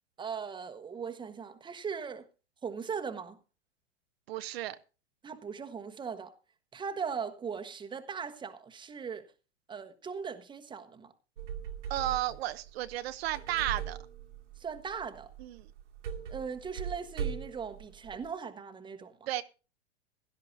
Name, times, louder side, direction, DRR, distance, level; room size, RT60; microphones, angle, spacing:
voice 1, 0.2-2.3 2.6-3.4 5.2-6.3 6.7-9.2 9.7-11.1 14.6-15.3 16.3-19.3, right 6 dB, 15° right, 1.3 m, -39 dB
voice 2, 4.3-4.8 11.9-14.0 15.4-15.7 19.3-19.4, right 14 dB, 60° right, 0.9 m, -33 dB
sound 1, 11.4-18.3, right 8 dB, 80° right, 2.1 m, -41 dB
16.5 x 12.5 x 2.7 m
hypercardioid pair, 120°, 35 cm